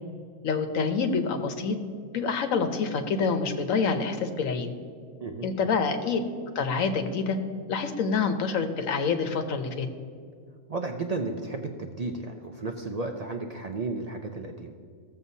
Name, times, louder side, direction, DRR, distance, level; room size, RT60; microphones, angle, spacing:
voice 1, 0.4-1.8 2.1-4.7 5.4-6.2 6.5-7.4 7.7-9.9, left 5 dB, 75° left, 6 dB, 1.1 m, -27 dB
voice 2, 10.7-14.7, right 3 dB, 70° right, 4 dB, 0.3 m, -33 dB
15.5 x 7.2 x 2.7 m, 2.2 s
omnidirectional pair, 1.4 m